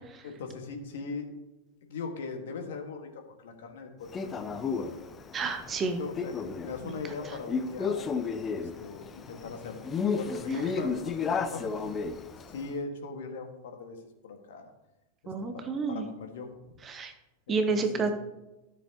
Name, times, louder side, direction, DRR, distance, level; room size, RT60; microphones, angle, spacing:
voice 1, 0.2-1.3 1.8-5.0 6.0-8.1 8.5-11.9 12.5-14.7 15.2-16.5 17.5-18.1, left 4 dB, 60° left, 4 dB, 1.7 m, -40 dB
Male speech man speaking, 4.1-12.7, left 5 dB, 20° left, 0.7 m, -33 dB
voice 2, 5.3-6.0 6.8-6.9 15.3-16.1 16.9-17.1 17.5-18.1, right 4 dB, 25° right, 7 dB, 0.9 m, -30 dB
13.0 x 7.0 x 2.9 m, 1.0 s
figure-of-eight pair, 90°, 0 cm